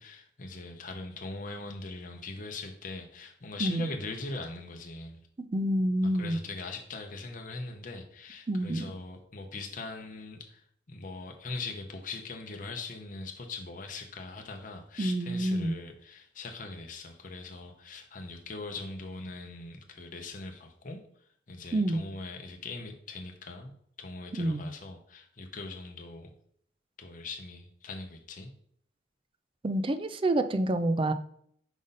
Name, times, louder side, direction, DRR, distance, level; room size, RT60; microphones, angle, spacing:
voice 1, 0.0-5.2 6.0-10.6 10.9-21.0 21.5-23.7 24.0-26.3 27.0-28.5, left 3 dB, 45° left, 4 dB, 0.7 m, -41 dB
voice 2, 3.6-3.9 5.4-6.4 8.5-8.9 15.0-15.7 21.7-22.0 24.4-24.7 29.6-31.1, right 1 dB, 30° right, 10 dB, 0.4 m, -28 dB
5.4 x 5.0 x 4.0 m, 0.66 s
head